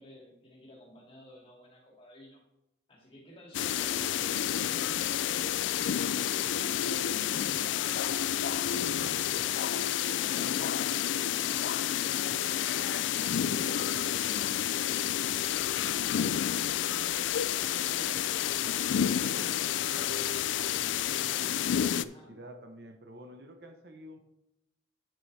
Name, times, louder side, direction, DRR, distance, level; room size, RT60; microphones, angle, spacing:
voice 1, 0.0-2.4 2.9-6.1 22.0-22.3, left 1 dB, 30° left, -3 dB, 2.5 m, -54 dB
sound 1, 3.5-22.0, left 10 dB, 80° left, 0.3 m, -30 dB
voice 2, 17.4-24.2, right 1 dB, 60° right, 5 dB, 1.0 m, -51 dB
9.3 x 8.1 x 3.4 m, 0.86 s
head